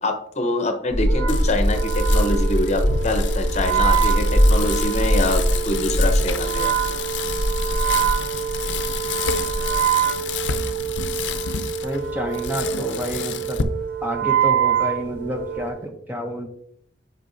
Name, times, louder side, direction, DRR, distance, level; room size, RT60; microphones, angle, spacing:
voice 1, 0.0-6.7, left 2 dB, 35° left, 6 dB, 0.8 m, -25 dB
sound 1, 0.9-15.7, equal, 15° left, 2.4 m, -24 dB
Wind instrument woodwind instrument, 1.0-15.8, right 11 dB, 80° right, 0.7 m, -26 dB
Bicycle, 1.3-13.6, left 6 dB, 75° left, 0.5 m, -30 dB
voice 2, 11.8-13.6 14.0-16.5, equal, 10° right, 4 dB, 0.6 m, -29 dB
7.8 x 5.6 x 2.6 m, 0.69 s
head